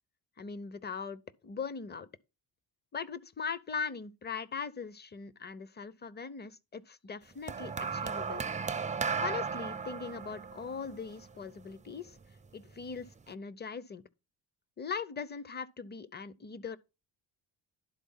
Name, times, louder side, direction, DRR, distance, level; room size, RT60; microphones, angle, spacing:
voice 1, 0.4-2.1 2.9-8.4 9.2-12.2 12.5-14.1 14.8-16.8, left 5 dB, 25° left, 0.7 m, -40 dB
sound 1, 7.5-11.9 12.8-13.1, right 5 dB, 15° right, 0.4 m, -35 dB
11.5 x 4.1 x 5.5 m
cardioid pair, 90°, 44 cm